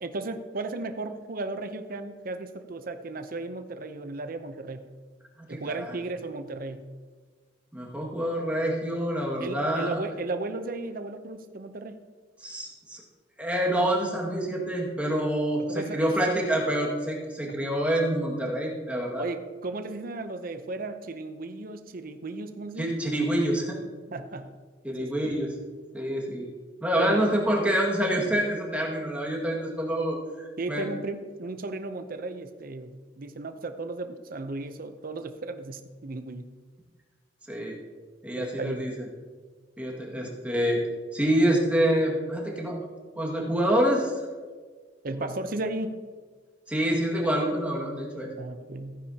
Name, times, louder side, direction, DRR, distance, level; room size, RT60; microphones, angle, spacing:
voice 1, 0.0-4.9 5.5-6.8 9.4-12.0 15.7-16.1 17.5-17.6 19.2-22.9 24.1-24.5 25.0-25.1 27.0-27.2 30.6-36.5 38.3-38.9 45.0-46.0 48.4-49.0, right 2 dB, 50° right, 8 dB, 0.7 m, -35 dB
voice 2, 7.7-10.0 12.4-13.0 13.4-19.2 22.8-23.8 24.8-25.5 25.9-26.5 26.8-30.2 30.7-30.9 37.5-37.8 38.2-39.1 39.8-40.8 41.1-42.9 43.2-44.1 46.7-48.3, right 1 dB, 10° right, -2 dB, 1.9 m, -26 dB
15.5 x 9.7 x 2.9 m, 1.5 s
head